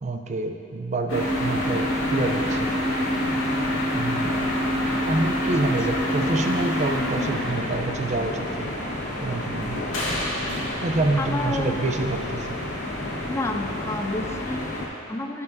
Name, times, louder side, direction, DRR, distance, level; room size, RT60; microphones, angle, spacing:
voice 1, 0.0-2.7 3.9-4.4 5.1-8.8 9.2-9.9 10.8-12.6, right 2 dB, 35° right, 4 dB, 0.5 m, -27 dB
sound 1, 1.1-14.9, left 1 dB, 75° left, 1.4 m, -27 dB
sound 2, 3.2-10.7, right 1 dB, 5° right, 1.5 m, -45 dB
voice 2, 11.2-11.9 13.3-15.4, left 2 dB, 15° left, 4 dB, 0.4 m, -30 dB
15.0 x 5.4 x 2.7 m, 2.6 s
head